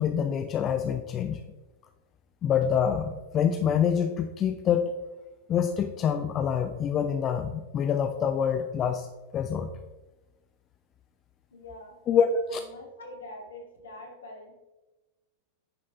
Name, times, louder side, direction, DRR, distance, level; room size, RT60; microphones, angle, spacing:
voice 1, 0.0-1.4 2.4-4.9 5.5-9.1 9.3-9.7 12.1-12.6, left 7 dB, 30° left, 7 dB, 0.5 m, -26 dB
voice 2, 11.5-12.0 12.5-14.5, left 2 dB, 65° left, 0 dB, 2.4 m, -44 dB
10.0 x 5.3 x 4.0 m, 1.1 s
figure-of-eight pair, 90°, 0 cm